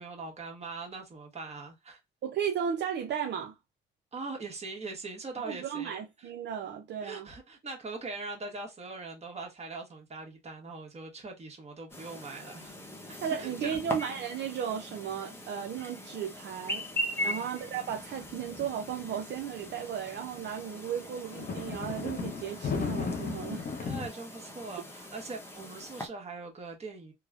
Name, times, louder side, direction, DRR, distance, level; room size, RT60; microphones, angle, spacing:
voice 1, 0.0-2.0 4.1-6.3 7.0-12.8 13.1-13.8 17.1-17.5 23.8-27.1, right 3 dB, 30° right, 1.1 m, -41 dB
voice 2, 2.2-3.6 5.5-7.3 13.2-16.8 17.2-23.7, right 8 dB, 60° right, 0.5 m, -35 dB
Chirp tweet, 11.9-26.1, equal, 10° left, 0.8 m, -41 dB
sound 1, 17.6-19.9 20.5-20.6 21.2-24.1, left 5 dB, 45° left, 0.7 m, -36 dB
3.0 x 2.0 x 2.4 m
cardioid pair, 90°, 20 cm